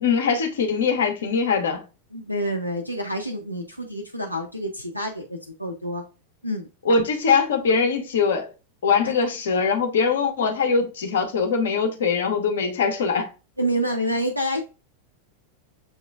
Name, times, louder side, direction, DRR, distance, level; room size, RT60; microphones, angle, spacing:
voice 1, 0.0-1.8 6.8-8.5 8.8-13.3, left 5 dB, 60° left, 0.9 m, -22 dB
voice 2, 2.1-6.0 6.4-6.7 9.0-9.1 13.6-14.6, equal, 90° left, 0.6 m, -28 dB
7.1 x 3.0 x 2.4 m
figure-of-eight pair, 90°, 0 cm